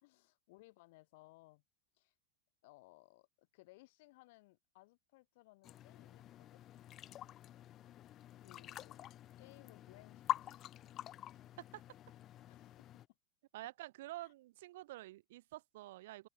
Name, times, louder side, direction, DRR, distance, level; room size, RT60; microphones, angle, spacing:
voice 1, 0.0-1.6 1.9-2.1 2.6-6.6 8.4-9.1 9.4-10.7 12.5-13.0, left 22 dB, 60° left, 1.9 m, -63 dB
sound 1, 5.6-13.1, left 12 dB, 30° left, 0.4 m, -46 dB
voice 2, 13.5-16.3, right 17 dB, 65° right, 0.9 m, -49 dB
open air
supercardioid pair, 155°, 0 cm